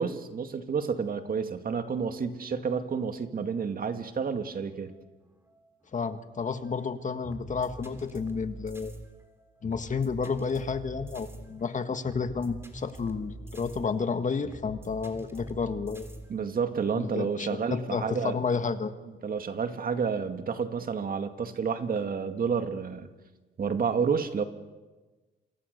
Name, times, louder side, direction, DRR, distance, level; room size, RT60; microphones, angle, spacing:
voice 1, 0.0-4.9 16.3-18.4 19.2-23.1 23.6-24.4, right 6 dB, 45° right, 7 dB, 2.1 m, -30 dB
sound 1, 2.2-16.5, right 1 dB, 10° right, 3.6 m, -46 dB
voice 2, 5.9-8.9 9.6-16.1 16.9-18.9, left 5 dB, 40° left, 9 dB, 1.8 m, -31 dB
28.5 x 25.0 x 6.8 m, 1.2 s
cardioid pair, 90°, 20 cm